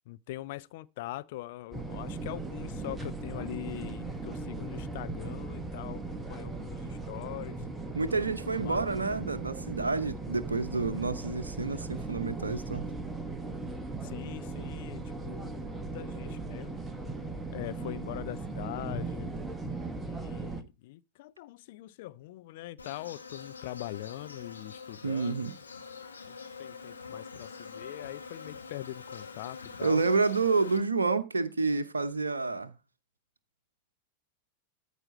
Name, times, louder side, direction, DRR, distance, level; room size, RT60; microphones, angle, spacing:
voice 1, 0.1-7.6 8.6-8.8 14.0-16.8 17.5-19.3 19.9-25.5 26.3-30.0, left 16 dB, 50° left, 0.5 m, -42 dB
sound 1, 1.7-20.6, right 3 dB, 10° right, 1.1 m, -38 dB
voice 2, 7.9-12.9 25.0-25.5 29.8-32.8, right 4 dB, 75° right, 0.7 m, -29 dB
Insect, 22.8-30.8, left 5 dB, 75° left, 1.6 m, -45 dB
13.5 x 4.9 x 4.3 m
figure-of-eight pair, 90°, 0 cm